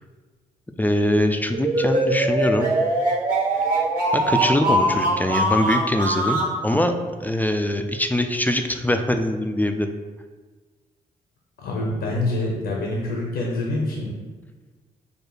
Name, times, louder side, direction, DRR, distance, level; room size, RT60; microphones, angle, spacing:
voice 1, 0.8-2.7 4.1-7.0 7.2-9.9, left 1 dB, 10° left, 6 dB, 0.3 m, -22 dB
sound 1, 1.5-6.5, right 1 dB, 45° right, 1.2 m, -22 dB
voice 2, 11.6-14.1, left 2 dB, 70° left, -1 dB, 0.7 m, -26 dB
4.8 x 2.2 x 3.1 m, 1.3 s
hypercardioid pair, 45°, 19 cm